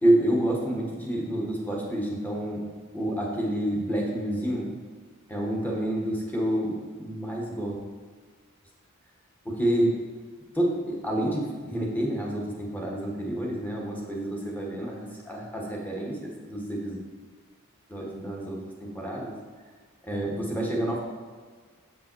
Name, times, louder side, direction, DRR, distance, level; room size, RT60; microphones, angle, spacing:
voice 1, 0.0-2.6 2.9-4.7 5.3-7.8 9.4-10.0 10.5-17.0 17.9-19.3 20.0-21.0, right 1 dB, 10° left, -2 dB, 1.4 m, -28 dB
7.2 x 5.3 x 4.5 m, 1.5 s
head